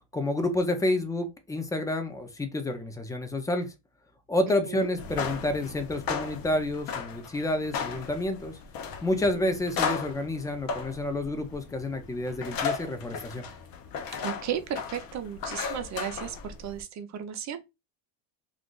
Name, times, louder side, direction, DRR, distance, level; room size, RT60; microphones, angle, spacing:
voice 1, 0.1-3.7 4.3-8.6 9.0-13.5, left 1 dB, 10° left, 0.4 m, -29 dB
voice 2, 4.5-4.9 14.2-17.6, right 9 dB, 35° right, 0.6 m, -35 dB
sound 1, 4.9-16.8, left 6 dB, 45° left, 0.7 m, -36 dB
2.4 x 2.4 x 3.6 m
supercardioid pair, 105°, 49 cm